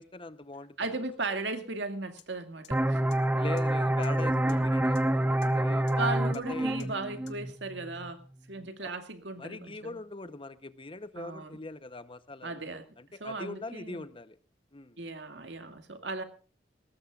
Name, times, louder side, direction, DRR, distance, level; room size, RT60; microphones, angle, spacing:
voice 1, 0.0-0.8 3.4-5.9 6.5-6.7 8.8-8.9 9.4-12.7 13.0-14.4 14.7-15.0, left 2 dB, 30° left, 13 dB, 0.9 m, -41 dB
voice 2, 0.8-3.1 4.5-4.6 6.0-8.2 8.5-10.0 11.2-11.6 12.4-12.9 13.2-14.1 15.0-16.2, right 3 dB, 75° right, 7 dB, 2.2 m, -36 dB
sound 1, 2.2-2.3 2.6-2.7 3.1-3.2 3.6-3.7 4.0-4.1 4.5-4.6 5.0-5.1 5.4-5.5 5.9-6.0 6.3-6.4 6.8-6.9 7.3-7.4, left 12 dB, 70° left, 2.0 m, -52 dB
sound 2, 2.7-8.1, right 1 dB, 10° right, 0.7 m, -27 dB
22.0 x 18.5 x 2.5 m, 0.35 s
head